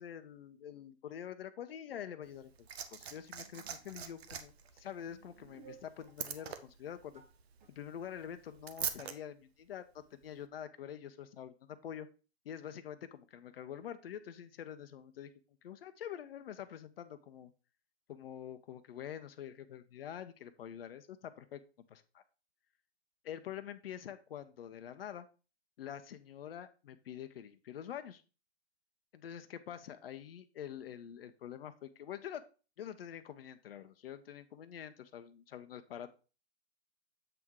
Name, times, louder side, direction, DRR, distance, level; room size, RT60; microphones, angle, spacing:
voice 1, 0.0-7.2 7.7-12.1 12.4-15.3 15.6-17.5 18.1-21.6 21.9-22.2 23.2-25.3 25.8-28.2 29.1-32.4 32.8-36.1, left 9 dB, 60° left, 10 dB, 0.7 m, -46 dB
Liquid, 2.2-9.2 10.2-10.3, right 8 dB, 65° right, 0.9 m, -44 dB
sound 1, 3.0-4.4 5.1-6.6 6.8-7.4 7.6-7.7, right 7 dB, 45° right, 1.7 m, -59 dB
7.8 x 3.6 x 4.6 m, 0.34 s
hypercardioid pair, 135°, 33 cm